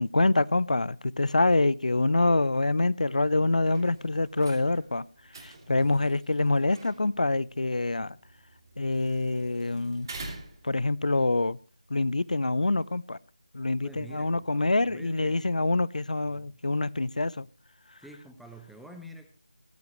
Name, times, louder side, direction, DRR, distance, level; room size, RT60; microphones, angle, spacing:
voice 1, 0.0-5.0 5.4-8.2 8.8-10.1 10.6-11.6 11.9-13.2 13.5-17.5, left 2 dB, 70° left, 0.6 m, -26 dB
sound 1, 3.7-11.2, right 2 dB, 30° right, 3.1 m, -48 dB
voice 2, 5.7-6.1 13.8-15.4 16.3-16.6 18.0-19.3, right 1 dB, ahead, 0.5 m, -48 dB
17.0 x 14.5 x 3.1 m
figure-of-eight pair, 170°, 4 cm